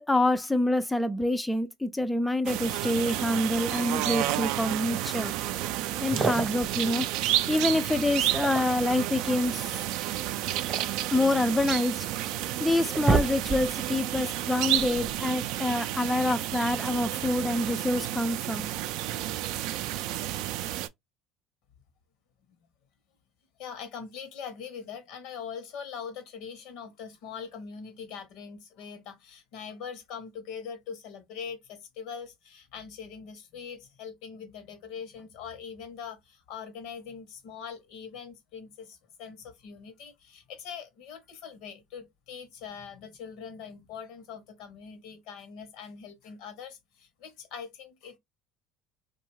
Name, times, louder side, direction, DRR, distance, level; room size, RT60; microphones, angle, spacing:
voice 1, 0.0-5.3 6.0-7.1 7.5-9.7 11.1-12.1 12.6-18.7, left 1 dB, 10° left, 0.3 m, -27 dB
sound 1, 2.5-20.9, right 13 dB, 70° right, 0.3 m, -31 dB
sound 2, 6.0-6.7 8.2-9.0 10.3-11.7 12.3-12.4 12.7-13.9, right 4 dB, 35° right, 0.8 m, -29 dB
voice 2, 23.6-48.2, left 6 dB, 70° left, 0.8 m, -42 dB
2.6 x 2.3 x 3.0 m
supercardioid pair, 85°, 0 cm